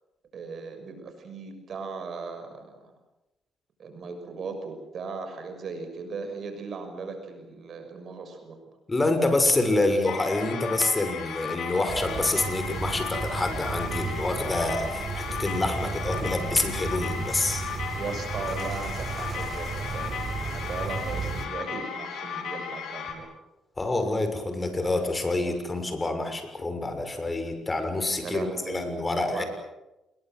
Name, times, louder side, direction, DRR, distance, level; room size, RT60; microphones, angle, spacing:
voice 1, 0.3-2.9 3.8-8.6 9.8-9.9 15.8-15.9 17.9-23.3 28.1-28.9 29.2-29.4, right 4 dB, 55° right, 6 dB, 6.5 m, -38 dB
voice 2, 8.9-17.6 23.8-29.4, left 2 dB, 25° left, 7 dB, 6.4 m, -27 dB
sound 1, 10.1-23.1, left 6 dB, 75° left, 5.0 m, -35 dB
sound 2, 11.9-21.5, right 5 dB, 40° right, 6.2 m, -34 dB
28.0 x 22.0 x 7.9 m, 0.98 s
cardioid pair, 90°, 0 cm